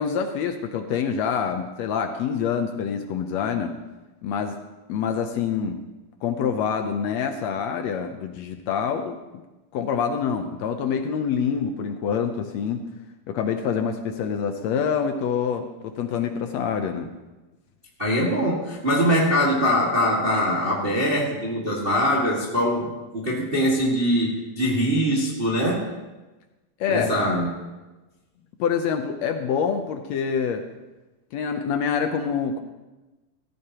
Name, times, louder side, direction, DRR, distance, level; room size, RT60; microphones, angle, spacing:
voice 1, 0.0-3.7 4.2-4.6 4.9-5.8 6.2-9.2 9.7-12.8 13.3-17.1 26.8-27.1 28.6-30.6 31.3-32.6, left 7 dB, 80° left, 6 dB, 1.5 m, -26 dB
voice 2, 18.0-25.9 26.9-27.5, equal, 25° right, -4 dB, 1.4 m, -22 dB
17.5 x 14.5 x 3.0 m, 1.1 s
omnidirectional pair, 3.9 m